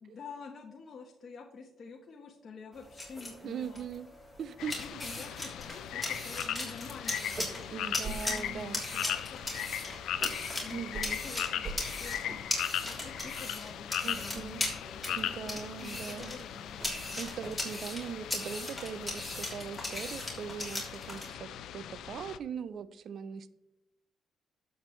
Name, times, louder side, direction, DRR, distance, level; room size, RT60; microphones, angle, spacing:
voice 1, 0.0-3.8 4.8-9.9 10.6-10.8 11.2-12.5 12.8-17.2, left 4 dB, 50° left, 1 dB, 1.2 m, -48 dB
sound 1, 2.7-21.3, left 1 dB, 10° left, 3.4 m, -39 dB
voice 2, 3.4-4.1 4.4-5.0 7.7-8.8 10.7-11.2 14.0-14.8 15.1-16.4 17.2-23.5, right 7 dB, 60° right, 15 dB, 0.5 m, -40 dB
sound 2, 4.6-22.4, left 10 dB, 80° left, 0.5 m, -39 dB
sound 3, 5.6-5.8 6.1-6.6 6.8-6.9 7.2-7.7 8.0-8.2 8.7-9.0 9.4-10.5 10.9-11.1 11.6-11.8 12.2-12.6 13.0-13.5 13.8-14.0 14.3-14.5 14.9-15.1 15.5-15.7 16.1-16.3 16.8-17.8 18.1-18.5, right 3 dB, 40° right, 1.1 m, -45 dB
11.5 x 8.0 x 3.2 m, 0.90 s
cardioid pair, 90°, 0 cm